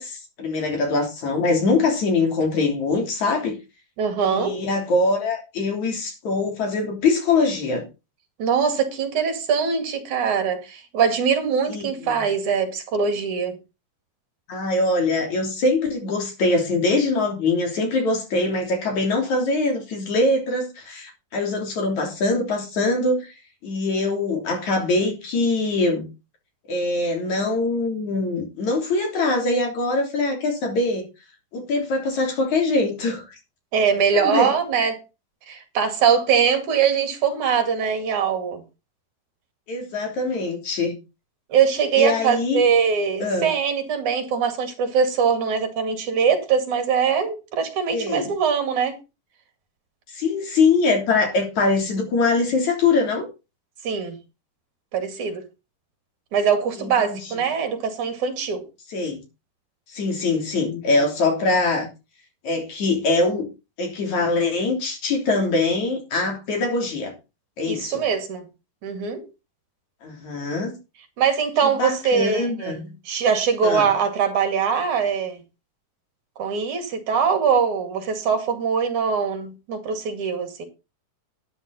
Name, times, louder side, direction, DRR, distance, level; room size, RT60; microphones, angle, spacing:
voice 1, 0.0-3.6 4.2-7.8 11.7-12.2 14.5-23.3 23.6-26.1 26.7-31.1 31.5-33.4 34.1-34.5 39.7-41.0 42.0-42.6 43.2-43.5 47.9-48.3 50.1-53.3 56.8-57.2 58.9-59.2 59.9-61.9 62.4-63.5 63.8-67.1 67.6-68.0 70.0-70.7 71.8-72.9 73.6-73.9, left 3 dB, 60° left, 4.6 m, -23 dB
voice 2, 4.0-4.5 8.4-13.6 33.7-35.0 35.5-38.6 41.5-49.0 53.8-54.2 54.9-55.5 56.3-58.6 67.6-68.5 68.8-69.2 71.2-75.4 76.4-80.6, right 6 dB, 70° right, 3.6 m, -22 dB
12.5 x 10.0 x 4.1 m
omnidirectional pair, 3.7 m